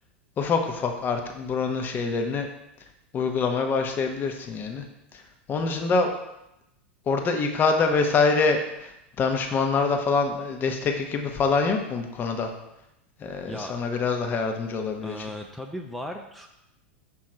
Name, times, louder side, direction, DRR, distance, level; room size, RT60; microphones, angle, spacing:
voice 1, 0.4-2.5 3.1-4.8 5.1-5.2 5.5-6.1 7.1-12.5 13.2-15.3, left 4 dB, 30° left, 4 dB, 0.9 m, -25 dB
voice 2, 13.5-13.8 15.0-16.5, equal, ahead, 2 dB, 0.5 m, -36 dB
6.1 x 3.7 x 4.4 m, 0.86 s
hypercardioid pair, 100°, 6 cm